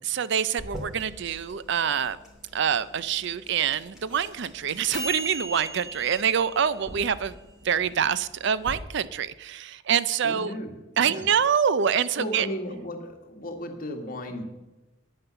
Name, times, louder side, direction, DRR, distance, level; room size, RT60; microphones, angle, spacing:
voice 1, 0.0-2.2 2.5-7.4 7.6-10.5 11.0-12.5, right 7 dB, 65° right, 16 dB, 0.5 m, -25 dB
sound 1, 0.6-8.7, right 1 dB, 5° right, 2.8 m, -39 dB
voice 2, 10.2-11.3 12.2-14.5, equal, 45° left, 4 dB, 1.7 m, -35 dB
9.7 x 9.2 x 6.9 m, 1.1 s
head